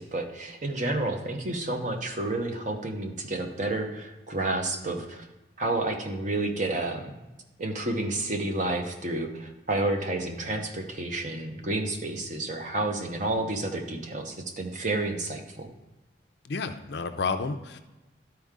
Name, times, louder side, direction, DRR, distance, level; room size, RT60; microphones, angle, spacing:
voice 1, 0.0-5.3 5.6-7.1 7.6-15.7, right 2 dB, 40° right, 4 dB, 0.9 m, -30 dB
voice 2, 16.4-17.8, left 4 dB, 60° left, 8 dB, 0.5 m, -31 dB
12.0 x 4.5 x 3.6 m, 1.1 s
head